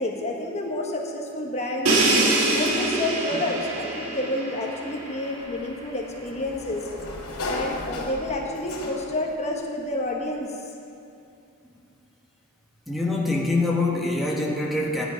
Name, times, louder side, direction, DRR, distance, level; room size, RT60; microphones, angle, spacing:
voice 1, 0.0-1.9 2.5-6.9 7.4-10.6, left 1 dB, 30° left, 0 dB, 1.3 m, -29 dB
Crash cymbal, 1.9-5.7, right 2 dB, 70° right, 1.8 m, -24 dB
Sliding door, 5.4-9.3, left 2 dB, 75° left, 2.7 m, -35 dB
voice 2, 12.9-15.1, left 2 dB, ahead, -3 dB, 1.2 m, -24 dB
14.0 x 10.0 x 5.1 m, 2.6 s
head